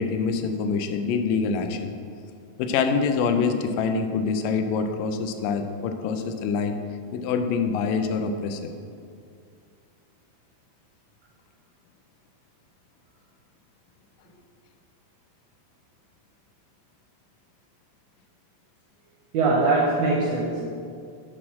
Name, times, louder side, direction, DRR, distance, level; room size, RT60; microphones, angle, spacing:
voice 1, 0.0-1.9 2.6-6.8 7.1-8.7, left 5 dB, 90° left, 7 dB, 2.2 m, -25 dB
voice 2, 19.3-20.6, right 3 dB, 80° right, -3 dB, 1.5 m, -22 dB
5.8 x 4.8 x 5.5 m, 2.3 s
omnidirectional pair, 3.8 m